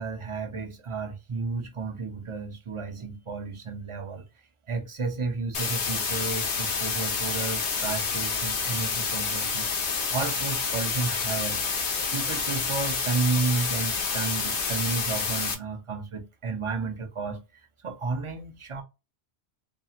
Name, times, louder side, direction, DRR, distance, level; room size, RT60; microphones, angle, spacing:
voice 1, 0.0-4.3 4.7-9.7 10.1-11.6 12.1-18.8, right 4 dB, 55° right, 0.3 m, -32 dB
sound 1, 5.5-15.5, left 5 dB, 80° left, 1.0 m, -28 dB
2.7 x 2.4 x 2.7 m
omnidirectional pair, 1.1 m